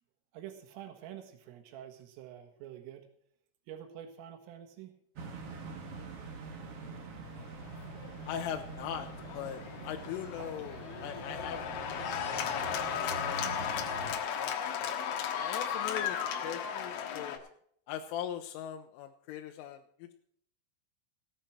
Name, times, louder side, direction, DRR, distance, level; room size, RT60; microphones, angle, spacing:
voice 1, 0.3-3.1 3.7-4.9, right 10 dB, 90° right, 5 dB, 4.2 m, -47 dB
sound 1, 5.2-14.2, right 4 dB, 55° right, 1.6 m, -45 dB
Cheering / Applause, 7.7-17.4, left 8 dB, 65° left, 2.9 m, -36 dB
voice 2, 8.3-9.1 9.3-14.0 14.4-15.0 15.4-16.2 16.4-17.4 17.9-20.1, left 9 dB, 90° left, 4 dB, 3.4 m, -41 dB
18.0 x 9.2 x 4.5 m, 0.66 s
omnidirectional pair, 5.7 m